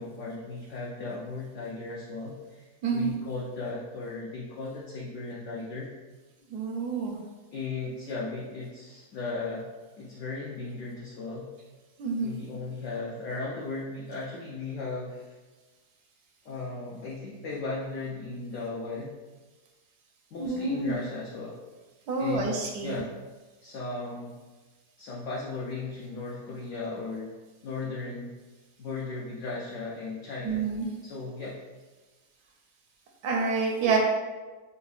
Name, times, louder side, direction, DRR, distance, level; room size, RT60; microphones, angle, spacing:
voice 1, 0.0-5.9 7.5-9.7 10.0-11.5 12.2-15.4 16.4-19.1 20.3-21.6 22.2-23.1 23.6-24.4 25.0-27.4 27.6-28.3 28.8-30.7 31.0-31.6, left 3 dB, 70° left, -4 dB, 0.7 m, -36 dB
voice 2, 2.8-3.1 6.5-7.2 12.0-12.4 20.3-21.0 22.1-23.0 30.4-30.9 33.2-34.0, right 4 dB, 80° right, 0 dB, 1.2 m, -28 dB
5.2 x 2.1 x 2.4 m, 1.3 s
omnidirectional pair, 1.7 m